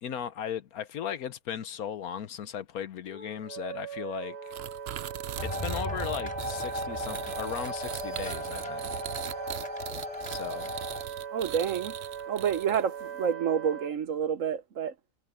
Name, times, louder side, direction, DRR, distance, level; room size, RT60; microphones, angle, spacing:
voice 1, 0.0-4.4 5.4-9.1 10.3-10.8, left 9 dB, 65° left, 1.3 m, -37 dB
Wind instrument woodwind instrument, 3.1-13.9, right 8 dB, 35° right, 2.3 m, -40 dB
sound 1, 4.5-13.0, right 11 dB, 85° right, 0.5 m, -41 dB
sound 2, 5.4-11.0, left 1 dB, 20° left, 4.2 m, -36 dB
voice 2, 11.3-11.9 12.3-14.9, right 8 dB, 55° right, 1.1 m, -29 dB
omnidirectional pair, 1.7 m